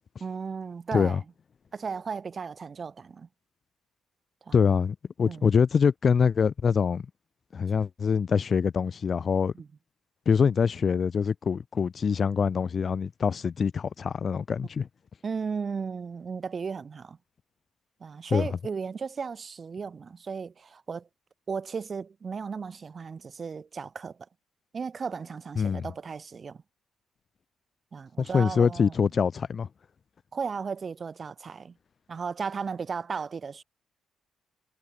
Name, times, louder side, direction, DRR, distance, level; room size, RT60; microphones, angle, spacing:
voice 1, 0.2-1.2 1.7-3.3 4.4-4.6 5.2-5.5 9.5-9.7 15.2-17.2 18.0-21.1 21.5-24.2 24.7-26.6 27.9-28.9 30.3-31.8 32.1-33.6, right 5 dB, 40° right, 1.2 m, -35 dB
voice 2, 4.5-7.1 7.5-9.5 10.3-14.9 18.3-18.5 25.6-25.9 28.2-29.7, left 6 dB, 45° left, 0.4 m, -24 dB
cardioid pair, 90°, 0 cm